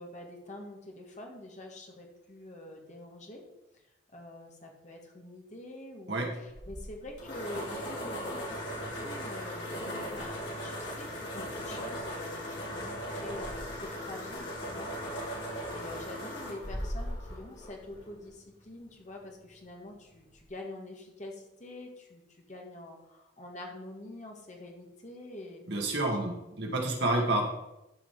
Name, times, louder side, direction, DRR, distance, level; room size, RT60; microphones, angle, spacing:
voice 1, 0.0-3.4 3.7-3.8 4.1-25.7 27.1-27.2, left 1 dB, 35° left, 1 dB, 1.9 m, -46 dB
sound 1, 6.5-18.3, equal, 65° left, 3.3 m, -38 dB
voice 2, 25.7-27.5, right 2 dB, 60° right, 0 dB, 2.1 m, -29 dB
13.0 x 5.3 x 4.9 m, 0.91 s
head